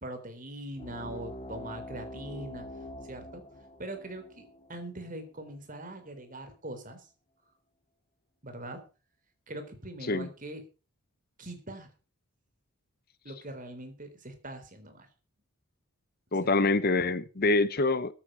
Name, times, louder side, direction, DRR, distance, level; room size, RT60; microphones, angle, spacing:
voice 1, 0.0-2.7 3.0-3.4 3.8-7.1 8.4-8.8 9.5-10.6 11.4-11.9 13.2-15.1 16.4-16.6, right 1 dB, 35° right, 3.6 m, -42 dB
sound 1, 0.8-5.9, left 1 dB, 25° left, 2.4 m, -45 dB
voice 2, 16.3-18.1, left 3 dB, 40° left, 0.8 m, -25 dB
14.5 x 9.7 x 5.5 m
head